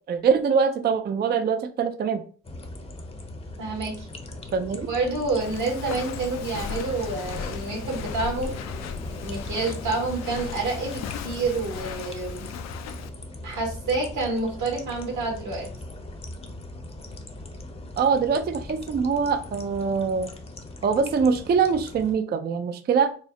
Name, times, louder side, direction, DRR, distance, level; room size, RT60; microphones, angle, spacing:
voice 1, 0.1-2.2 4.5-4.9 18.0-20.3 20.8-23.1, right 6 dB, 35° right, 8 dB, 0.4 m, -23 dB
sound 1, 2.4-22.1, left 2 dB, 20° left, 0.7 m, -39 dB
voice 2, 3.6-4.1 4.9-8.5 9.2-12.5 13.4-15.7, right 3 dB, 75° right, -1 dB, 1.9 m, -28 dB
Walk footsteps, 5.4-13.1, left 8 dB, 60° left, 0.5 m, -37 dB
4.3 x 2.0 x 3.6 m, 0.41 s
cardioid pair, 90°, 30 cm